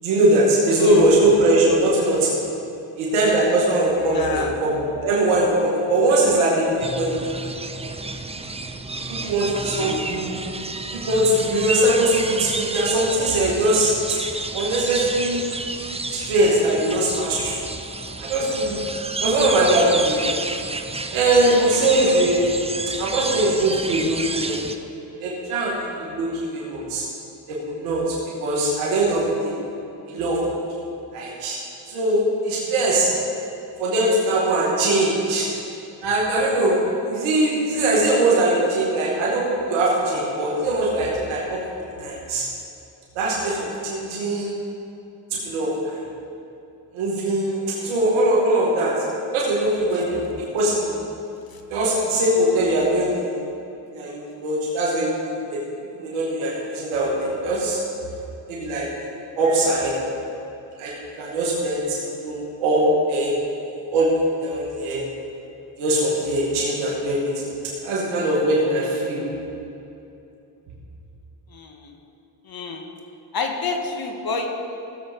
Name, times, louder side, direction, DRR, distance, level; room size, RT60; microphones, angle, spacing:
voice 1, 0.0-2.4 3.0-7.2 9.2-10.5 10.9-13.9 14.5-15.5 16.1-17.6 18.2-18.8 19.2-20.2 21.1-22.5 23.0-24.5 25.2-27.0 27.5-29.5 30.1-30.4 31.1-31.6 31.9-33.1 33.8-35.5 36.0-42.4 43.2-44.5 45.4-46.0 46.9-48.9 49.3-51.0 51.7-53.3 53.9-55.2 55.5-55.6 56.0-57.8 58.5-58.9 59.4-60.0 60.8-60.9 61.2-63.4 63.9-65.0 65.8-67.5 67.8-69.3, right 1 dB, 85° right, -5 dB, 2.4 m, -21 dB
voice 2, 0.8-1.2 4.1-4.5 9.7-10.1 47.8-48.0 51.5-51.6 71.5-71.9 72.5-72.9 73.3-74.5, left 4 dB, 50° left, 3 dB, 1.8 m, -28 dB
sound 1, 6.8-24.8, right 3 dB, 15° right, 0.8 m, -31 dB
16.5 x 7.6 x 5.4 m, 2.7 s
supercardioid pair, 60°, 47 cm